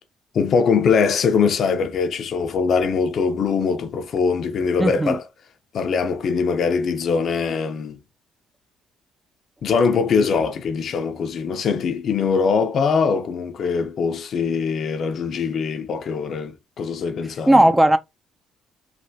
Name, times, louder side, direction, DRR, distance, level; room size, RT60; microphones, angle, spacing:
voice 1, 0.3-5.2 5.7-8.0 9.6-17.7, left 5 dB, 60° left, 0.5 m, -22 dB
voice 2, 4.8-5.2 17.5-18.0, right 1 dB, 10° right, 0.4 m, -15 dB
3.3 x 2.3 x 2.6 m
cardioid pair, 85°, 0 cm